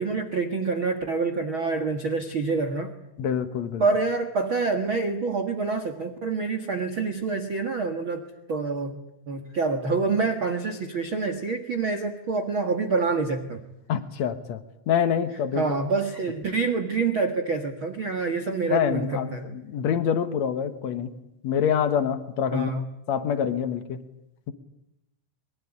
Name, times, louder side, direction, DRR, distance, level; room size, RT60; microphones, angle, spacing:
voice 1, 0.0-2.9 3.8-8.2 8.5-9.0 9.3-13.6 15.5-19.5 22.5-22.8, right 4 dB, 80° right, 6 dB, 1.1 m, -27 dB
voice 2, 3.2-3.8 13.9-14.6 14.9-15.8 18.7-19.3 19.7-21.1 21.4-22.7 23.1-24.0, left 8 dB, 80° left, 11 dB, 1.5 m, -25 dB
23.5 x 23.0 x 10.0 m, 0.84 s
omnidirectional pair, 5.2 m